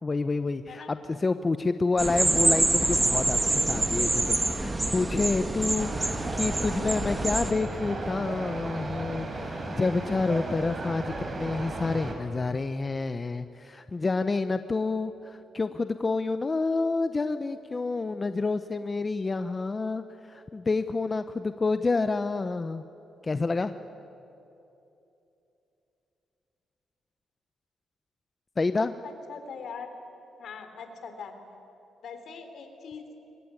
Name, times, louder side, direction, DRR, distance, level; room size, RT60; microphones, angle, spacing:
voice 1, 0.0-5.9 6.3-22.8 23.2-23.7 28.6-28.9, left 3 dB, 25° left, 10 dB, 0.7 m, -28 dB
sound 1, 2.0-7.5, right 2 dB, 15° right, 1.8 m, -26 dB
sound 2, 5.8-12.1, right 2 dB, 35° right, 4.5 m, -35 dB
voice 2, 29.0-29.9 30.4-31.3 32.0-33.0, left 6 dB, 65° left, 7 dB, 3.4 m, -41 dB
24.0 x 21.0 x 9.7 m, 2.9 s
cardioid pair, 120°, 0 cm